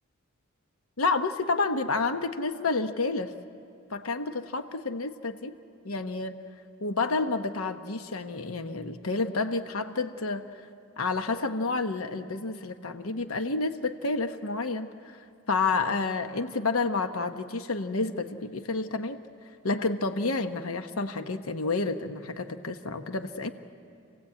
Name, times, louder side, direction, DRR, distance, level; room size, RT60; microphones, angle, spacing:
voice 1, 1.0-3.3 3.9-5.6 5.8-6.4 6.8-10.4 11.0-14.9 15.5-19.2 19.6-23.5, left 3 dB, 80° left, 8 dB, 1.0 m, -29 dB
29.0 x 17.5 x 8.6 m, 2.5 s
head